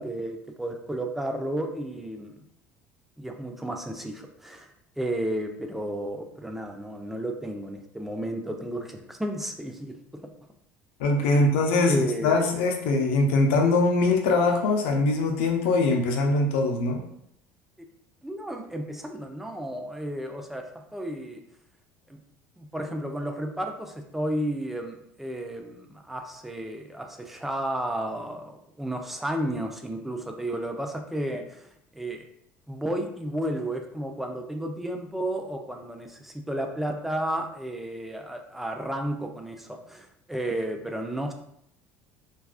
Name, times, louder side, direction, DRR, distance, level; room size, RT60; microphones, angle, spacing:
voice 1, 0.0-2.4 3.2-4.7 5.0-9.9 11.2-12.3 18.2-20.7 20.9-21.4 22.1-22.2 22.6-32.2 32.7-41.3, right 1 dB, 5° right, 3 dB, 0.3 m, -32 dB
voice 2, 11.0-17.0, left 3 dB, 85° left, 3 dB, 0.5 m, -22 dB
2.3 x 2.3 x 2.3 m, 0.75 s
supercardioid pair, 110°, 6 cm